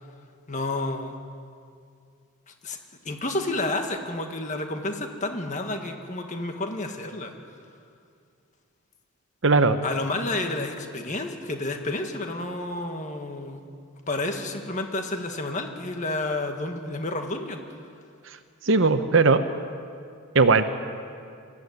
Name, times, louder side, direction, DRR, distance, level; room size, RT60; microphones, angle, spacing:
voice 1, 0.5-1.1 2.6-2.8 3.1-7.3 9.8-13.6 14.1-17.6, left 2 dB, 35° left, 4 dB, 1.7 m, -30 dB
voice 2, 9.4-9.8 18.6-19.4 20.3-20.6, right 4 dB, 55° right, 9 dB, 0.9 m, -18 dB
22.0 x 14.5 x 9.6 m, 2.3 s
head